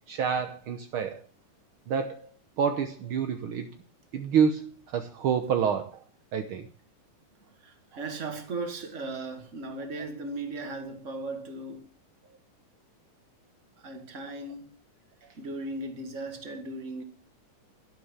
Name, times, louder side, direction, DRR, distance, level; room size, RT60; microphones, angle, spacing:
voice 1, 0.1-1.2 1.9-3.7 4.1-6.0 6.3-6.7, right 7 dB, 70° right, 1.2 m, -28 dB
voice 2, 7.6-11.9 13.8-14.8 15.4-17.0, right 2 dB, 25° right, 1.8 m, -37 dB
12.0 x 11.5 x 7.3 m
omnidirectional pair, 3.8 m